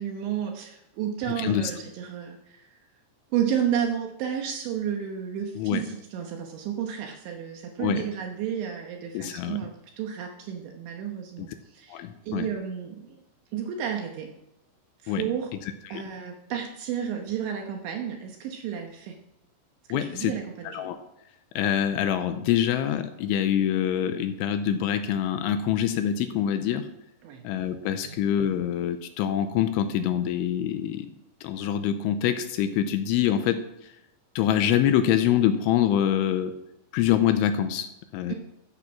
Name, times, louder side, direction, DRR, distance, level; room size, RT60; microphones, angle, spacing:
voice 1, 0.0-2.7 3.3-13.2 13.5-14.3 15.0-15.5 15.9-19.2 19.9-20.9 27.2-27.4 28.0-28.3 38.3-38.4, right 8 dB, 75° right, 2 dB, 3.2 m, -32 dB
voice 2, 1.4-1.7 5.6-5.8 7.8-8.1 9.1-9.6 11.4-11.5 11.9-12.5 15.1-15.2 15.9-16.1 19.9-20.3 20.6-21.0 21.6-26.9 27.4-31.1 31.4-33.9 34.4-36.6 36.9-38.3, left 10 dB, 85° left, 9 dB, 3.0 m, -25 dB
13.5 x 8.4 x 6.0 m, 0.86 s
omnidirectional pair, 5.7 m